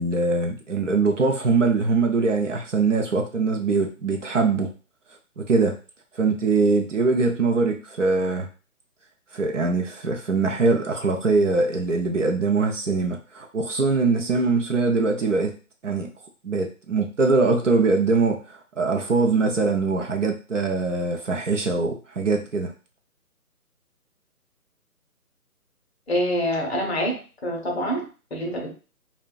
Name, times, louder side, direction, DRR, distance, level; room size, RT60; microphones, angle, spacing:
voice 1, 0.0-4.7 5.4-5.8 6.1-8.5 9.3-15.5 15.8-16.1 16.4-22.7, right 3 dB, 55° right, 3 dB, 0.5 m, -22 dB
voice 2, 26.1-28.7, equal, 45° left, 1 dB, 0.7 m, -26 dB
2.6 x 2.1 x 2.3 m, 0.35 s
figure-of-eight pair, 150°, 46 cm